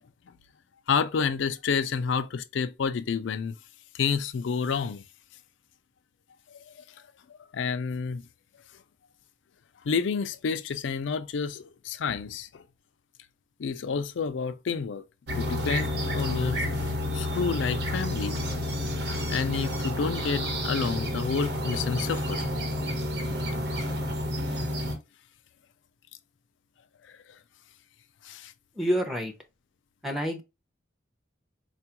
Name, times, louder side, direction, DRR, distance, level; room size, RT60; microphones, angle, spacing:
voice 1, 0.9-3.6 3.9-5.0 6.5-6.8 7.5-8.2 9.8-12.6 13.6-15.0 15.4-16.7 17.1-18.4 19.3-22.5 27.1-27.2 28.2-28.5, left 5 dB, 75° left, 0.4 m, -29 dB
sound 1, 15.3-24.9, left 1 dB, 60° right, 1.0 m, -30 dB
voice 2, 28.7-29.3 30.0-30.4, equal, ahead, 0.6 m, -27 dB
4.3 x 2.3 x 2.9 m
head